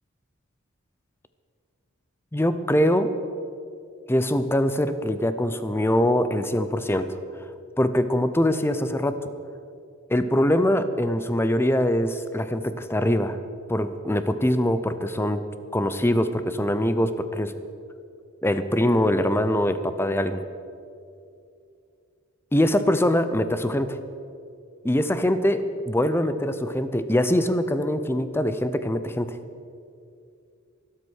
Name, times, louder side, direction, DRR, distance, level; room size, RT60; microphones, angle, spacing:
voice 1, 2.3-3.2 4.1-7.2 7.8-9.3 10.1-13.4 13.7-15.5 15.7-17.5 18.4-20.4 22.5-24.0 24.8-29.4, left 1 dB, 10° left, 11 dB, 0.6 m, -23 dB
12.5 x 12.5 x 6.4 m, 2.4 s
head